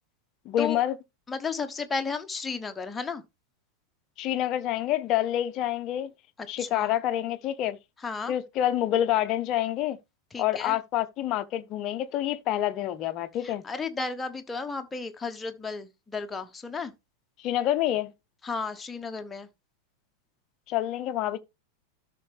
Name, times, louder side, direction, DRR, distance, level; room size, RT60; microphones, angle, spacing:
voice 1, 0.5-1.0 4.2-6.1 6.5-7.8 8.3-10.0 10.4-13.6 17.4-18.1 20.7-21.4, left 12 dB, 35° left, 0.7 m, -27 dB
voice 2, 1.3-3.2 6.4-6.9 8.0-8.3 10.3-10.8 13.4-16.9 18.4-19.5, left 4 dB, 15° left, 1.0 m, -33 dB
13.0 x 5.9 x 3.3 m
figure-of-eight pair, 90°, 0 cm